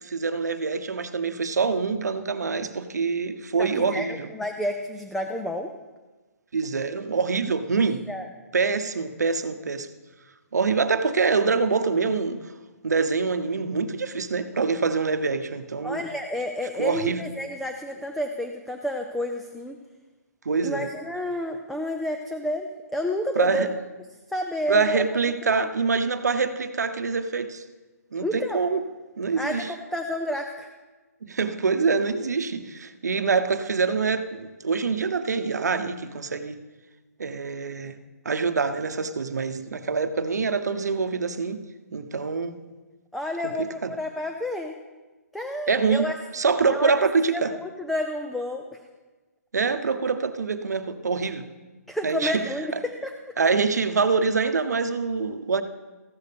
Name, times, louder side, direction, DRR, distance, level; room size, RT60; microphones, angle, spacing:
voice 1, 0.0-4.3 6.5-8.0 8.5-9.9 10.5-12.5 12.8-16.0 16.8-17.2 20.4-20.9 23.4-23.7 24.7-27.6 28.1-28.8 29.2-29.7 31.2-36.6 37.2-38.0 38.2-41.6 41.9-42.6 43.4-43.9 45.7-46.0 46.3-47.5 49.5-51.4 52.0-52.5 52.7-52.8 53.4-55.6, right 4 dB, 85° right, 10 dB, 0.9 m, -25 dB
voice 2, 3.6-5.7 7.9-8.3 15.8-19.8 20.6-23.7 24.3-25.0 25.5-25.7 28.2-28.6 29.3-30.7 43.1-44.7 45.3-46.1 46.7-46.9 47.3-48.8 51.9-53.1, left 1 dB, ahead, 4 dB, 0.4 m, -30 dB
14.5 x 11.5 x 3.4 m, 1.3 s
hypercardioid pair, 150°, 9 cm